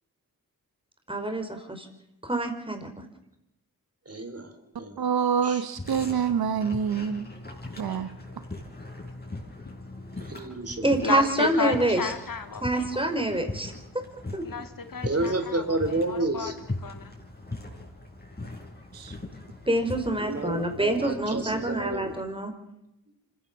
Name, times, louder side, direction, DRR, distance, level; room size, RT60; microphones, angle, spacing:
voice 1, 1.1-1.9 2.2-3.1 10.8-12.1 12.6-14.1 14.3-14.4 19.7-22.5, right 1 dB, 15° right, 5 dB, 5.1 m, -27 dB
voice 2, 4.1-5.0 5.4-5.6 10.3-11.0 15.0-16.5 20.2-22.1, right 2 dB, 40° right, 7 dB, 4.2 m, -30 dB
voice 3, 5.0-7.3 7.8-8.2 18.9-19.2, right 7 dB, 75° right, 12 dB, 1.0 m, -26 dB
sound 1, 5.8-22.2, left 2 dB, 25° left, 6.4 m, -40 dB
voice 4, 11.0-13.2 14.4-16.5 16.8-17.1, left 5 dB, 60° left, 8 dB, 1.9 m, -33 dB
25.5 x 16.0 x 7.1 m, 0.85 s
cardioid pair, 40°, 37 cm